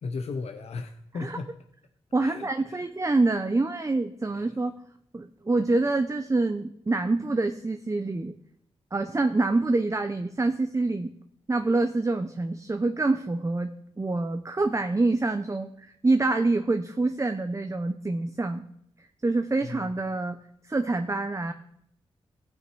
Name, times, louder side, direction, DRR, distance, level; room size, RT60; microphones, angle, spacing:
voice 1, 0.0-1.5 2.2-2.9 4.3-4.5 19.6-19.8, left 4 dB, 70° left, 5 dB, 0.8 m, -36 dB
voice 2, 2.1-4.7 5.1-8.3 8.9-11.1 11.5-18.6 19.0-20.4 20.6-21.5, right 2 dB, 25° right, 7 dB, 0.8 m, -26 dB
15.5 x 6.2 x 4.7 m, 0.70 s
supercardioid pair, 45°, 11 cm